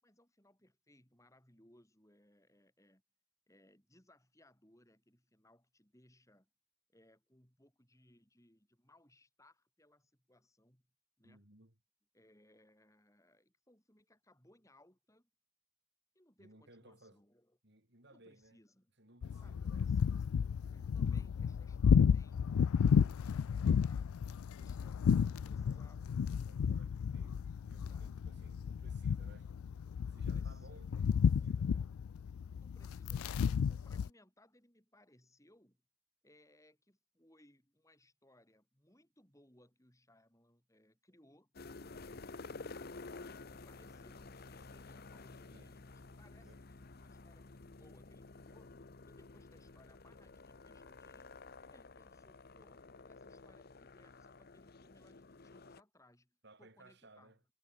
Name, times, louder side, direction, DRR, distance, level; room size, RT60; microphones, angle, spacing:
voice 1, 0.0-3.0 3.5-6.5 6.9-10.9 11.2-11.4 12.1-15.3 16.1-17.6 18.1-18.9 19.3-20.4 20.7-24.2 24.5-26.2 27.9-28.2 30.1-31.5 32.6-35.8 36.2-41.5 42.9-48.7 49.1-57.4, left 1 dB, 15° left, 6.2 m, -67 dB
voice 2, 11.2-11.7 16.4-17.2 17.6-18.6 19.0-19.9 25.2-25.8 26.5-29.5 30.1-31.9 45.5-45.7 46.4-46.6 56.4-57.4, right 2 dB, 50° right, 4.0 m, -62 dB
sound 1, 19.2-34.1, left 7 dB, 80° left, 0.4 m, -32 dB
sound 2, 41.5-55.8, left 3 dB, 45° left, 0.8 m, -52 dB
head